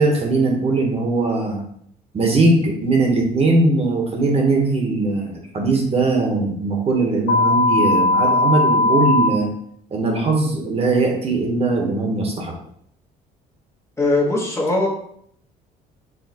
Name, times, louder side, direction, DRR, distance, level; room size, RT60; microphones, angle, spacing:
voice 1, 0.0-1.6 2.1-9.5 9.9-12.5, right 2 dB, 35° right, 0 dB, 1.0 m, -20 dB
sound 1, 7.3-9.3, left 2 dB, 70° left, 0.4 m, -17 dB
voice 2, 14.0-14.9, left 2 dB, 15° left, -4 dB, 1.0 m, -19 dB
4.7 x 2.7 x 2.8 m, 0.66 s
cardioid pair, 110°, 17 cm